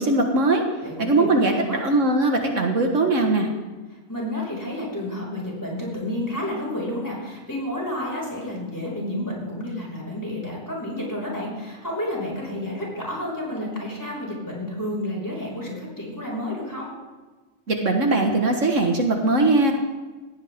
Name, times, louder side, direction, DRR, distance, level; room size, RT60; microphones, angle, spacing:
voice 1, 0.0-0.6 1.0-1.5 1.8-3.5 17.7-19.7, right 2 dB, 65° right, 3 dB, 1.8 m, -20 dB
voice 2, 0.8-1.8 4.1-16.9, left 1 dB, 15° left, -3 dB, 5.6 m, -30 dB
19.5 x 16.0 x 3.7 m, 1.3 s
omnidirectional pair, 1.4 m